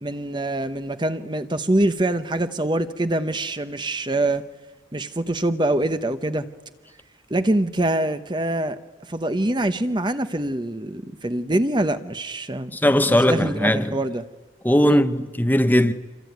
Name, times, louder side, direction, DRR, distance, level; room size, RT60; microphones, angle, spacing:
voice 1, 0.0-4.4 4.9-6.5 7.3-8.8 9.1-12.7 13.1-14.2 14.8-15.0, right 1 dB, 25° right, 0.9 m, -24 dB
voice 2, 12.7-14.0 14.6-15.9, left 1 dB, 10° left, 0.9 m, -19 dB
27.0 x 23.5 x 9.4 m
head